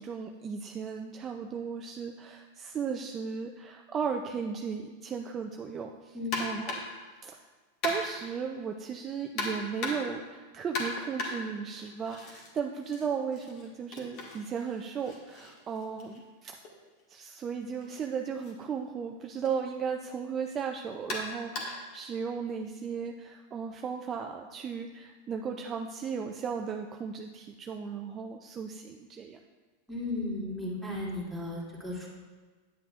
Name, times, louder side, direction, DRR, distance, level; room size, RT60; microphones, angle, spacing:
voice 1, 0.0-6.8 7.2-7.4 7.8-16.6 17.1-29.4, right 6 dB, 25° right, 3 dB, 0.4 m, -36 dB
sound 1, 6.3-7.0 7.8-8.3 9.4-10.2 10.7-12.5 12.8-16.7 17.8-18.0 18.4-18.5 19.5-19.6 21.1-21.9, left 2 dB, 50° left, 1.7 m, -37 dB
voice 2, 29.9-32.1, left 2 dB, 5° left, -6 dB, 2.3 m, -35 dB
9.1 x 7.6 x 2.4 m, 1.4 s
hypercardioid pair, 120°, 0 cm